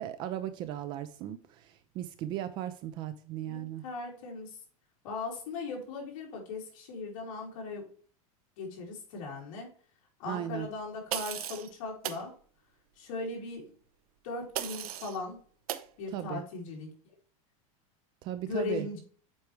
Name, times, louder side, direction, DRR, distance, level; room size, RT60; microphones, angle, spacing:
voice 1, 0.0-3.8 10.3-10.7 16.1-16.4 18.2-18.9, right 11 dB, 25° right, 0.4 m, -37 dB
voice 2, 3.4-4.5 5.0-7.8 8.6-9.7 10.2-12.3 13.0-13.7 14.2-15.4 16.0-16.9 18.5-19.0, left 3 dB, 60° left, 3.3 m, -38 dB
sound 1, 11.1-11.7 12.0-12.2 14.5-15.2 15.7-15.9, right 12 dB, 80° right, 0.8 m, -36 dB
8.1 x 4.6 x 3.2 m
supercardioid pair, 175°, 19 cm